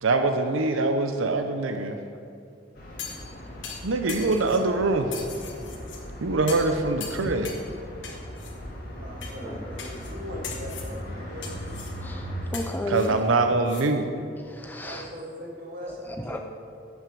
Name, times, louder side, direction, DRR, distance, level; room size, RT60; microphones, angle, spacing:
voice 1, 0.0-2.0 3.8-5.2 6.2-7.5 12.9-14.1, right 3 dB, 90° right, 6 dB, 0.7 m, -24 dB
sound 1, 2.7-12.5, equal, 45° left, 2.5 m, -39 dB
sound 2, 3.0-3.3 3.6-4.6 5.1-6.0 6.5-6.7 7.0-7.7 8.0-8.5 9.2-9.4 9.8-10.1 10.4-10.9 11.4-12.0 12.5-13.9 14.2-14.3, left 6 dB, 70° left, 1.5 m, -39 dB
voice 2, 8.9-11.5 13.7-13.9 14.8-16.4, equal, 45° right, -3 dB, 2.4 m, -40 dB
voice 3, 12.0-13.2 14.5-15.1 16.3-16.4, left 1 dB, 10° left, 3 dB, 0.5 m, -33 dB
11.0 x 6.1 x 6.9 m, 2.4 s
head